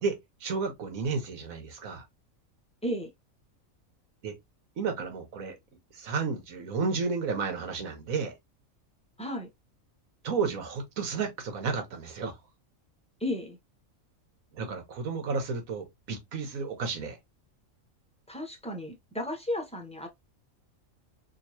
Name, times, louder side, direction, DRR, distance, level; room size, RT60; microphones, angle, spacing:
voice 1, 0.0-2.0 4.2-4.3 4.8-5.6 5.9-8.3 10.2-12.4 14.5-17.2, right 5 dB, 80° right, 1.4 m, -32 dB
voice 2, 9.2-9.5 13.2-13.6 18.3-20.1, left 1 dB, 5° left, 0.6 m, -34 dB
3.8 x 2.6 x 2.8 m
omnidirectional pair, 1.4 m